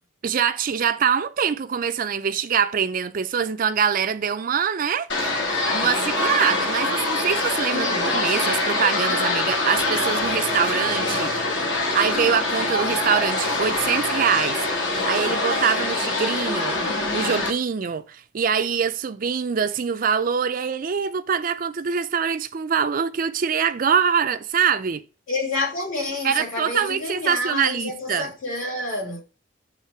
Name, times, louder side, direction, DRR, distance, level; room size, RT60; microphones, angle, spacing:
voice 1, 0.2-5.1 5.7-11.3 11.9-25.0 26.2-28.3, right 7 dB, 45° right, 0.4 m, -24 dB
sound 1, 5.1-17.5, left 2 dB, 65° left, 1.3 m, -24 dB
voice 2, 7.7-8.2 25.3-29.2, left 2 dB, 80° left, 2.9 m, -29 dB
7.3 x 3.1 x 4.7 m
head